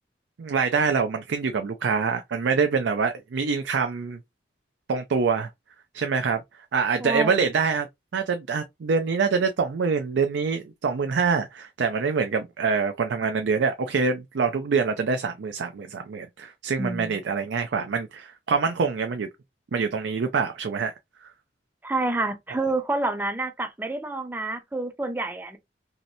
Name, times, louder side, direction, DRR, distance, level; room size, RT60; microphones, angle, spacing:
voice 1, 0.4-4.2 4.9-5.5 5.9-6.4 6.7-7.9 8.1-19.3 19.7-20.9 21.2-21.3, right 5 dB, 85° right, 0.4 m, -25 dB
voice 2, 7.0-7.5 16.8-17.2 21.8-25.6, right 2 dB, 10° right, 0.5 m, -28 dB
3.1 x 2.8 x 2.6 m
head